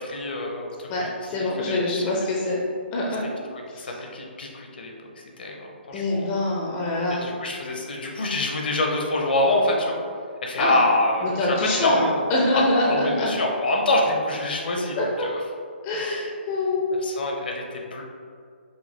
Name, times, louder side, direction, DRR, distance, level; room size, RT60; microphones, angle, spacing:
voice 1, 0.0-2.0 3.5-4.9 5.4-6.4 7.1-10.0 10.4-12.2 12.5-15.3 15.9-16.3 17.0-18.0, left 1 dB, 55° left, 0 dB, 0.8 m, -26 dB
voice 2, 1.3-2.6 2.9-3.2 3.7-3.9 5.9-7.2 10.6-10.8 11.2-13.4 15.0-15.3 15.8-16.8, left 2 dB, 20° left, -3 dB, 0.6 m, -25 dB
5.3 x 2.2 x 3.5 m, 2.2 s
figure-of-eight pair, 130°, 6 cm